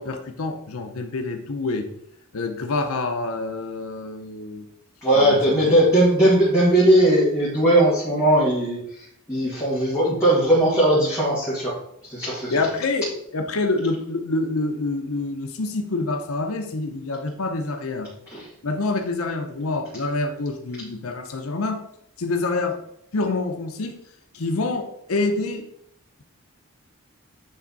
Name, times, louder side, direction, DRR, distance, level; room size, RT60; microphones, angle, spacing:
voice 1, 0.0-1.9 2.3-4.6 5.2-5.4 5.7-5.8 12.5-13.1 13.3-18.1 18.6-21.8 22.2-22.8 23.1-23.9 24.3-25.6, left 3 dB, 80° left, 5 dB, 0.8 m, -26 dB
voice 2, 5.0-11.7 12.1-12.6 18.3-18.5, right 1 dB, 15° left, -9 dB, 1.9 m, -19 dB
9.0 x 3.4 x 4.0 m, 0.75 s
head